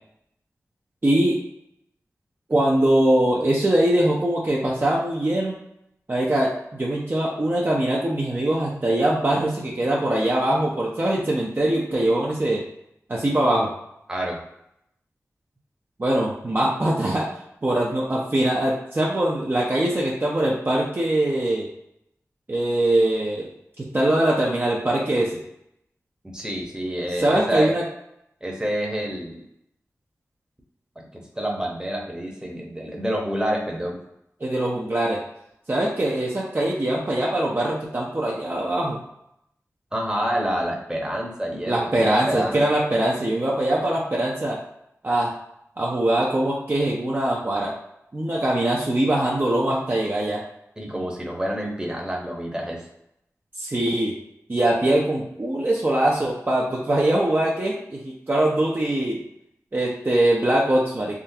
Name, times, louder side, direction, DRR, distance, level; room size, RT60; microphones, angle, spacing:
voice 1, 1.0-1.4 2.5-5.6 6.1-12.6 13.1-13.7 16.0-17.3 17.6-21.7 22.5-23.5 23.8-25.4 27.2-27.8 34.4-35.2 35.7-39.0 41.7-44.6 45.0-45.3 45.8-47.7 48.1-50.4 53.6-54.2 54.5-59.2 59.7-61.2, right 1 dB, 40° right, -3 dB, 0.6 m, -22 dB
voice 2, 14.1-14.4 26.2-27.7 28.4-29.4 31.0-34.0 39.9-42.6 50.8-52.8, equal, 15° right, -1 dB, 0.9 m, -28 dB
3.7 x 2.2 x 2.7 m, 0.79 s
cardioid pair, 40°, 6 cm